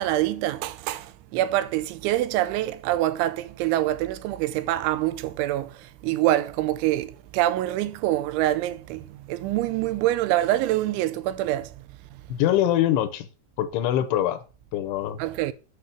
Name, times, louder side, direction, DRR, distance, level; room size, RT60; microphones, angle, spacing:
voice 1, 0.0-11.7 15.2-15.5, right 14 dB, 85° right, 3.0 m, -25 dB
voice 2, 12.3-13.3 13.6-14.4 14.7-15.2, left 12 dB, 85° left, 3.2 m, -23 dB
8.5 x 6.3 x 6.0 m
omnidirectional pair, 5.4 m